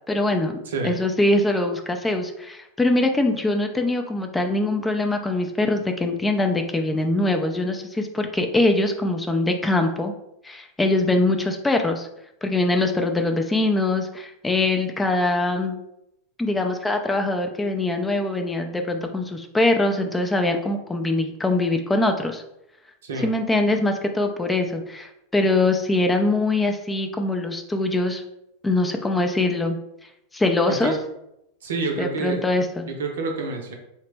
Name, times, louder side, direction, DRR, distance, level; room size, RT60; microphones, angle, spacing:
voice 1, 0.1-0.6 0.8-10.1 10.4-12.1 12.4-15.8 16.4-22.4 23.2-28.2 28.6-29.8 30.3-30.9 32.0-32.9, left 2 dB, 10° left, 5 dB, 0.4 m, -23 dB
voice 2, 23.0-23.3 30.8-31.0 31.6-32.4 32.9-33.7, right 3 dB, 75° right, 2 dB, 0.6 m, -28 dB
2.9 x 2.1 x 3.2 m, 0.83 s
hypercardioid pair, 95°, 0 cm